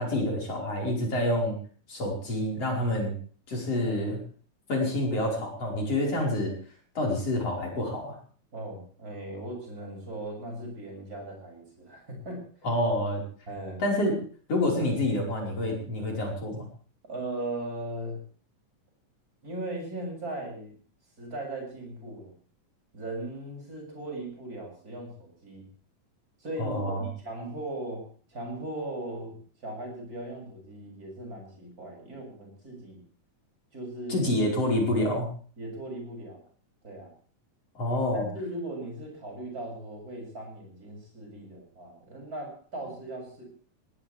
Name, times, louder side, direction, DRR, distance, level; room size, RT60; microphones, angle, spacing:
voice 1, 0.0-1.6 1.9-3.2 3.5-4.2 4.7-6.5 7.0-8.2 12.6-13.2 13.8-14.2 14.5-16.7 26.6-27.1 34.1-35.3 37.8-38.3, left 1 dB, 50° left, -1 dB, 6.0 m, -27 dB
voice 2, 8.5-12.4 13.5-13.8 17.1-18.2 19.4-20.7 21.2-22.3 22.9-25.7 26.4-33.0 33.7-34.5 35.6-36.4 36.8-37.1 38.1-43.4, right 1 dB, 25° right, 0 dB, 7.7 m, -38 dB
19.5 x 19.0 x 3.5 m, 0.43 s
omnidirectional pair, 3.6 m